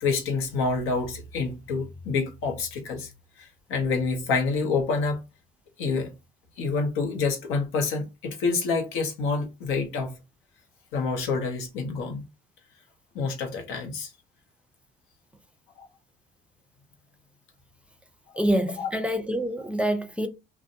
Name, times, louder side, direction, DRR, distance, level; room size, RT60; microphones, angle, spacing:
voice 1, 0.0-3.1 3.4-5.2 5.8-6.1 6.6-10.1 10.9-12.2 13.1-14.1 15.8-15.9 18.8-18.9, left 4 dB, 90° left, 0.7 m, -27 dB
voice 2, 18.4-20.3, equal, 5° right, 0.4 m, -26 dB
2.5 x 2.1 x 2.6 m
cardioid pair, 90°, 21 cm